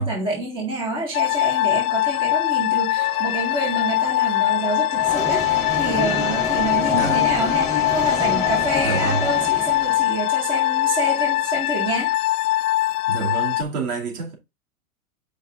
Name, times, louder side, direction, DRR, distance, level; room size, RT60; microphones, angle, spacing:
voice 1, 0.0-12.1, right 1 dB, 10° right, 1.8 m, -27 dB
sound 1, 1.1-13.6, left 15 dB, 85° left, 0.5 m, -22 dB
Wind instrument woodwind instrument, 2.9-11.4, right 2 dB, 60° right, 2.7 m, -41 dB
sound 2, 4.9-10.1, left 4 dB, 5° left, 1.0 m, -28 dB
voice 2, 8.8-9.2 13.1-14.4, right 4 dB, 85° right, 2.7 m, -27 dB
7.9 x 5.1 x 2.5 m
supercardioid pair, 170°, 44 cm